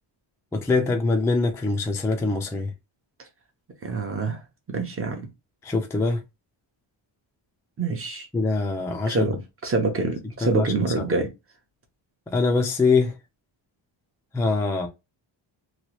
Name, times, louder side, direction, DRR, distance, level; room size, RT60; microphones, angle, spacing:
voice 1, 0.5-2.7 5.6-6.2 8.3-9.3 10.5-10.7 12.3-13.1 14.3-14.9, left 3 dB, 5° left, 0.3 m, -23 dB
voice 2, 3.8-4.4 4.7-5.3 7.8-8.3 9.1-11.3, right 3 dB, 30° right, 0.7 m, -26 dB
3.0 x 2.3 x 2.9 m
wide cardioid pair, 165°, 48 cm